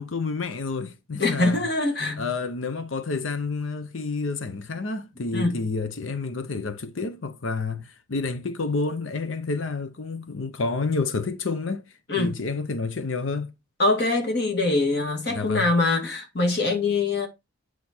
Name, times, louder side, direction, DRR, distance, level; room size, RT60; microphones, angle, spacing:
voice 1, 0.0-1.6 2.2-13.5 15.3-15.7, left 3 dB, 85° left, 0.8 m, -29 dB
voice 2, 1.2-2.3 5.3-5.6 12.1-12.4 13.8-17.3, left 2 dB, 55° left, 2.3 m, -23 dB
8.6 x 4.7 x 4.3 m
head